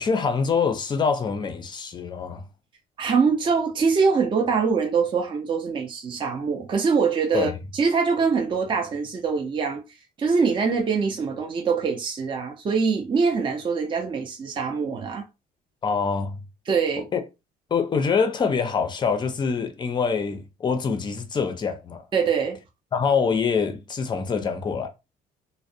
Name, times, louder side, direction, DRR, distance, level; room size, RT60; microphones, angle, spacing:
voice 1, 0.0-2.4 7.3-7.6 15.8-16.4 17.1-17.2 17.7-22.0 22.9-24.9, left 5 dB, 25° left, 0.5 m, -25 dB
voice 2, 3.0-9.8 10.2-15.2 16.7-17.1 22.1-22.6, right 5 dB, 30° right, 0.5 m, -23 dB
2.4 x 2.0 x 2.6 m
cardioid pair, 110°, 17 cm